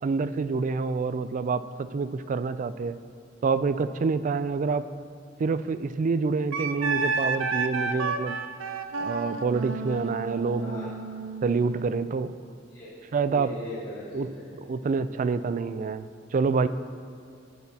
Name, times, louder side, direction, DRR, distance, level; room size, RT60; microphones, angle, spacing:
voice 1, 0.0-3.0 3.4-4.8 5.4-8.4 9.0-11.0 11.4-12.3 13.1-13.5 14.1-14.3 14.5-16.7, right 4 dB, 40° right, 13 dB, 0.3 m, -27 dB
Wind instrument woodwind instrument, 6.5-11.9, right 3 dB, 85° right, 0.6 m, -31 dB
voice 2, 10.6-10.9 12.7-12.9 13.2-14.4, left 1 dB, 25° left, -12 dB, 2.3 m, -39 dB
13.0 x 9.5 x 2.8 m, 2.5 s
head